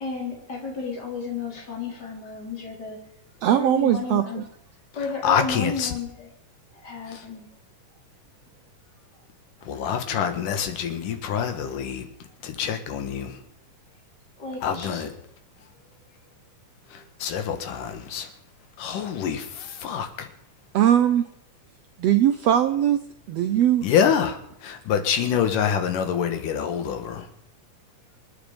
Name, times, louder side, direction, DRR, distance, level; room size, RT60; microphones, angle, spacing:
voice 1, 0.0-3.0 3.5-4.4 4.9-6.3 6.7-7.5 9.6-9.7 14.4-15.0 15.6-15.7, left 4 dB, 30° left, 4.6 m, -33 dB
voice 2, 3.4-4.4 20.7-21.2 22.0-23.0 23.3-23.8, right 11 dB, 75° right, 1.5 m, -20 dB
voice 3, 5.2-5.9 7.1-7.2 9.6-12.1 12.4-13.4 14.6-15.1 16.9-18.3 18.8-20.3 23.8-27.3, left 8 dB, 75° left, 3.1 m, -26 dB
26.5 x 9.5 x 5.2 m
omnidirectional pair, 3.8 m